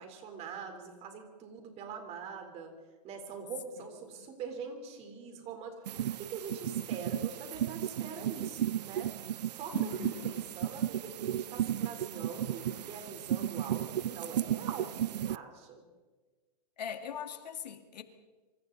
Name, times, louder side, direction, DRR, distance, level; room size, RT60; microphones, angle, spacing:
voice 1, 0.0-2.7 3.0-5.8 6.2-9.1 9.4-15.8, right 5 dB, 30° right, 4.0 m, -44 dB
voice 2, 3.8-4.2 9.7-10.4 16.8-18.0, left 8 dB, 85° left, 2.3 m, -41 dB
sound 1, 5.9-15.4, right 11 dB, 85° right, 0.6 m, -34 dB
26.0 x 25.5 x 4.1 m
hypercardioid pair, 140°, 21 cm